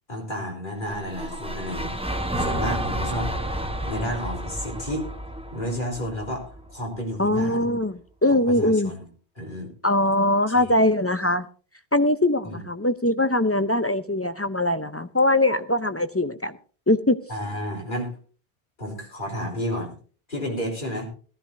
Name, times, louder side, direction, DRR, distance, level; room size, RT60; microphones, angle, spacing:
voice 1, 0.1-1.9 2.4-3.3 3.8-5.1 5.5-6.4 6.7-7.7 8.5-9.1 9.4-9.7 10.5-10.8 12.4-12.6 17.3-18.1 18.8-19.9 20.3-21.1, equal, 50° left, 0 dB, 3.8 m, -31 dB
sound 1, 0.8-7.0, right 1 dB, 5° right, 0.9 m, -31 dB
voice 2, 7.2-8.9 9.8-11.4 11.9-16.6 16.9-17.2, left 1 dB, 20° left, 11 dB, 0.4 m, -22 dB
18.0 x 13.5 x 2.6 m, 0.40 s
omnidirectional pair, 1.1 m